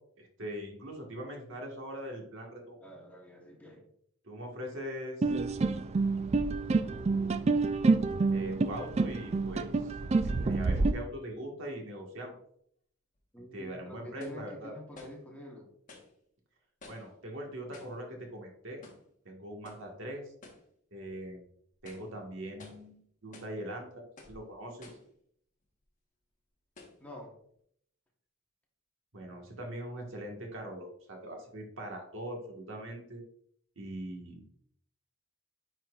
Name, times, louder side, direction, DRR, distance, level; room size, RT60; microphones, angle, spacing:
voice 1, 0.2-2.8 4.2-5.3 6.8-7.4 8.3-10.0 10.2-12.4 13.5-14.7 16.9-18.8 19.2-20.3 20.9-21.4 21.8-24.9 29.1-33.2 33.7-34.6, right 1 dB, 65° right, 1 dB, 1.6 m, -42 dB
voice 2, 2.8-3.9 13.3-15.7 27.0-27.3, left 1 dB, 5° left, -1 dB, 1.1 m, -47 dB
sound 1, 5.2-10.9, right 3 dB, 30° right, 0.3 m, -28 dB
sound 2, 13.2-13.3 14.2-14.5 14.9-15.3 15.9-16.1 16.8-17.2 17.7-18.0 18.8-19.1 19.6-19.9 20.4-20.7 21.1-21.2 21.7-22.1 22.6-22.9 23.3-23.6 24.2-24.4 24.8-25.1 25.8-25.9 26.8-27.0, left 3 dB, 40° left, 1.2 m, -52 dB
9.5 x 4.3 x 2.4 m, 0.67 s
head